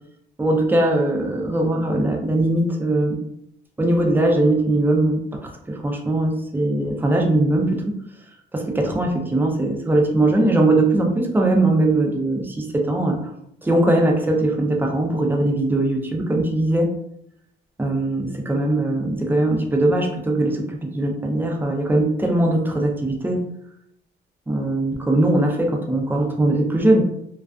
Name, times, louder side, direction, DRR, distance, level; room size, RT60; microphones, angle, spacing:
voice 1, 0.4-3.2 3.8-7.9 8.5-13.3 13.6-16.9 17.8-23.4 24.5-27.0, right 1 dB, 10° right, 1 dB, 0.5 m, -20 dB
2.4 x 2.3 x 2.3 m, 0.74 s
cardioid pair, 90°, 20 cm